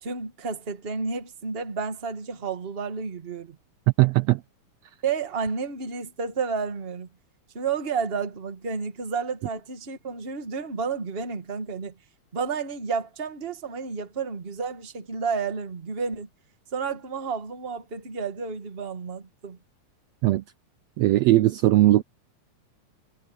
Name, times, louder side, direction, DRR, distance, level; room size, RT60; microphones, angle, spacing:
voice 1, 0.0-3.6 5.0-7.1 7.5-11.9 12.3-16.3 16.7-19.6, right 5 dB, 25° right, 1.4 m, -31 dB
voice 2, 4.0-4.4 20.2-20.4 21.0-22.0, right 16 dB, 80° right, 1.6 m, -19 dB
omnidirectional pair, 3.5 m